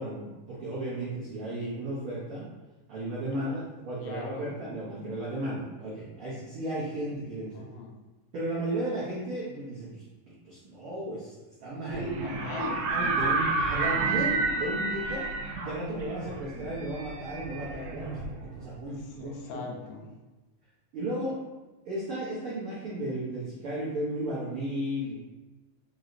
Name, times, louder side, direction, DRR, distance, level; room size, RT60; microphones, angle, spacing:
voice 1, 0.0-2.5 2.9-7.5 8.3-12.1 12.9-15.2 15.6-19.6 20.9-21.3 21.8-25.1, right 1 dB, 90° right, -9 dB, 1.2 m, -34 dB
voice 2, 4.0-4.7 7.5-8.0 12.2-13.5 19.1-20.1, left 4 dB, 90° left, 0 dB, 2.3 m, -42 dB
sound 1, 11.9-18.7, right 3 dB, 75° right, 1.8 m, -30 dB
5.3 x 3.1 x 2.5 m, 1.1 s
omnidirectional pair, 3.8 m